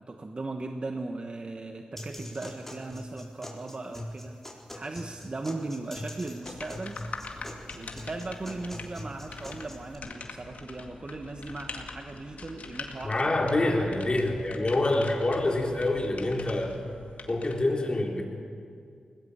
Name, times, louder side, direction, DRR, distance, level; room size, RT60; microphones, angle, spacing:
voice 1, 0.0-4.4 4.7-7.0 7.7-14.0, right 2 dB, 45° right, 5 dB, 1.3 m, -38 dB
sound 1, 2.0-9.9, left 1 dB, 10° left, 4.4 m, -42 dB
sound 2, 6.4-17.6, left 4 dB, 70° left, 2.0 m, -43 dB
voice 2, 13.0-16.8 17.3-18.2, left 2 dB, 40° left, 0 dB, 4.1 m, -26 dB
21.0 x 18.0 x 7.1 m, 2.3 s
cardioid pair, 45°, 3 cm